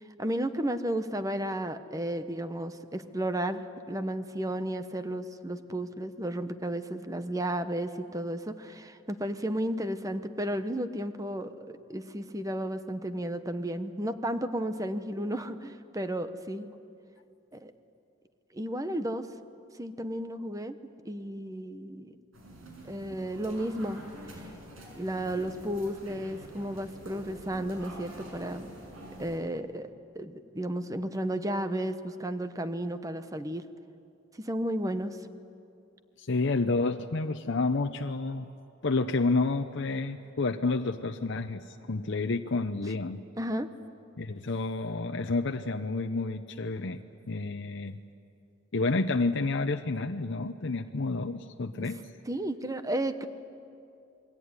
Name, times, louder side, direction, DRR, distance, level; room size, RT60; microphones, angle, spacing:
voice 1, 0.2-16.7 17.5-17.7 18.5-19.2 19.8-20.8 21.0-22.1 22.8-24.0 25.0-28.7 29.2-29.9 30.1-33.6 34.4-35.2 43.4-43.7 52.3-53.3, right 1 dB, 15° right, 10 dB, 1.0 m, -33 dB
sound 1, 22.3-29.4, right 1 dB, 85° right, 6.6 m, -46 dB
voice 2, 36.2-38.4 38.8-43.2 44.2-47.0 47.3-48.0 48.7-52.0, left 3 dB, 60° left, 6 dB, 0.8 m, -29 dB
28.5 x 21.5 x 9.7 m, 2.6 s
head